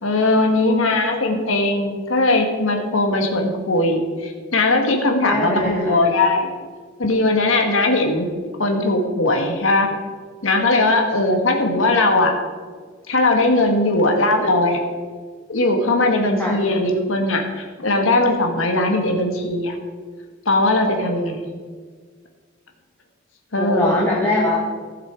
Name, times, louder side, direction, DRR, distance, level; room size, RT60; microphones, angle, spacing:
voice 1, 0.0-6.5 7.0-8.3 8.6-9.9 10.4-12.3 13.1-14.8 15.5-19.8 20.4-21.4 23.5-23.9, left 2 dB, 85° left, 3 dB, 1.7 m, -19 dB
voice 2, 5.2-6.0 16.4-16.6 23.6-24.6, left 1 dB, 10° left, -4 dB, 1.3 m, -21 dB
15.5 x 6.9 x 4.7 m, 1.5 s
head